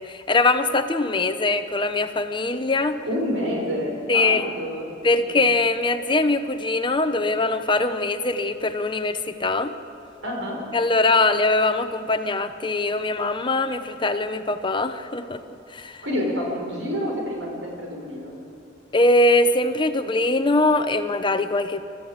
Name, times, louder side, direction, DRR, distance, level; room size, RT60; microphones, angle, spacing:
voice 1, 0.0-3.0 4.1-4.5 5.0-9.7 10.7-15.4 15.7-16.0 18.9-21.8, left 2 dB, 25° left, 9 dB, 0.8 m, -22 dB
voice 2, 3.0-4.9 5.3-5.4 10.2-10.6 16.0-18.3, equal, 75° right, -1 dB, 5.8 m, -28 dB
27.5 x 13.5 x 8.0 m, 2.7 s
head